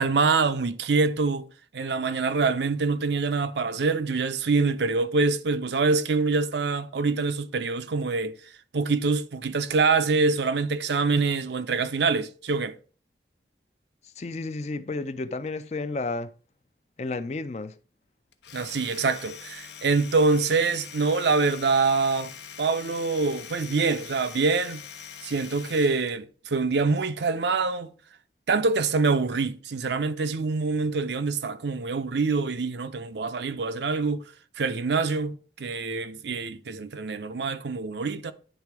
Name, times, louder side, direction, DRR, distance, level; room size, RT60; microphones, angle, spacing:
voice 1, 0.0-1.5 1.7-8.4 8.7-12.8 18.5-22.3 22.6-24.8 25.2-27.9 28.5-34.2 34.6-38.3, right 4 dB, 75° right, 0.6 m, -25 dB
voice 2, 14.2-16.3 17.0-17.7, left 3 dB, 40° left, 0.4 m, -32 dB
Domestic sounds home sounds, 18.3-26.2, left 8 dB, 80° left, 0.9 m, -43 dB
10.0 x 3.7 x 4.7 m
head